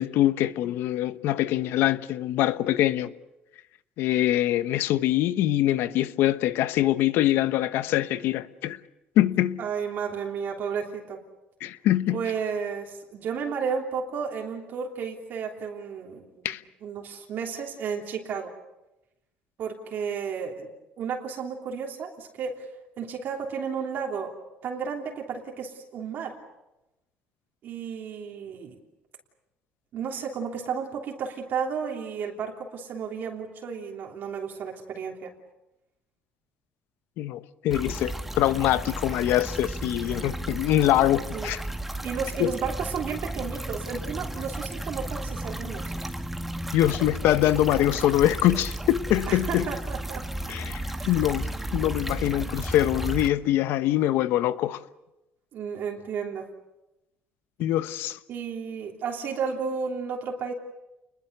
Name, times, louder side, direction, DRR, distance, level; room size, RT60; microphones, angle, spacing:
voice 1, 0.0-3.1 4.0-8.8 9.2-9.6 11.6-12.2 16.4-16.6 37.2-41.6 42.4-42.5 46.7-49.7 50.5-54.8 57.6-58.2, left 13 dB, 70° left, 1.0 m, -24 dB
voice 2, 9.6-11.2 12.1-16.5 16.8-18.5 19.6-20.7 21.0-22.7 23.0-24.4 24.6-26.4 27.6-28.8 29.9-35.3 41.3-41.5 42.0-45.9 49.3-50.3 50.9-51.3 55.5-56.5 58.3-60.5, right 6 dB, 55° right, 3.2 m, -33 dB
sound 1, 37.7-53.3, right 1 dB, 5° right, 1.5 m, -34 dB
29.0 x 21.5 x 6.8 m
cardioid pair, 115°, 4 cm